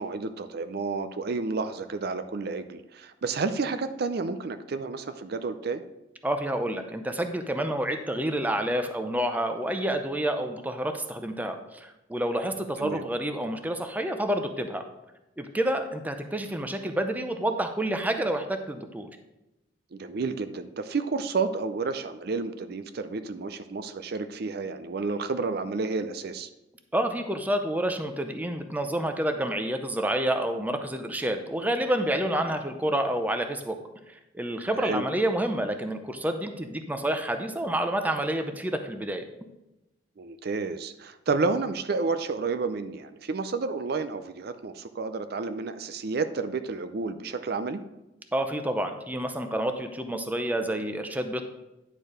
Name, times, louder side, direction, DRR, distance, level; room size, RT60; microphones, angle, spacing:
voice 1, 0.0-5.8 12.8-13.0 19.9-26.5 34.7-35.0 40.2-47.8, right 4 dB, 55° right, 10 dB, 0.5 m, -30 dB
voice 2, 6.2-14.8 15.4-19.1 26.9-33.8 34.3-39.2 48.3-51.4, right 1 dB, 10° right, 6 dB, 0.6 m, -29 dB
10.0 x 4.5 x 5.0 m, 0.95 s
head